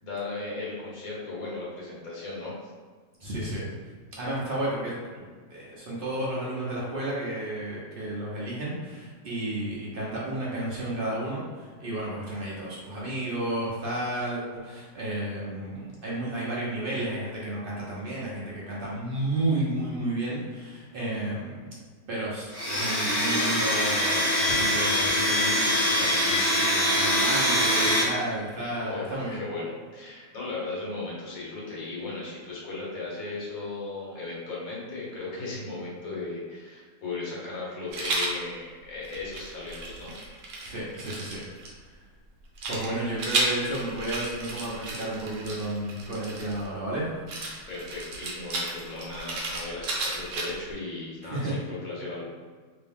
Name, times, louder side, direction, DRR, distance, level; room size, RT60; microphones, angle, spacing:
voice 1, 0.0-2.6 28.8-40.1 47.7-52.2, left 3 dB, 55° left, -5 dB, 1.4 m, -36 dB
voice 2, 3.2-3.6 4.2-5.2 5.5-21.7 22.1-29.4 40.6-41.4 42.7-47.2 51.3-51.5, right 1 dB, 45° right, -6 dB, 0.7 m, -32 dB
Domestic sounds home sounds, 22.5-28.0, equal, 20° left, 0.8 m, -24 dB
Rattle, 37.9-38.4 39.0-41.7 42.6-46.7 47.3-50.7, right 2 dB, 75° right, 1.4 m, -33 dB
3.0 x 2.9 x 3.5 m, 1.5 s
omnidirectional pair, 2.0 m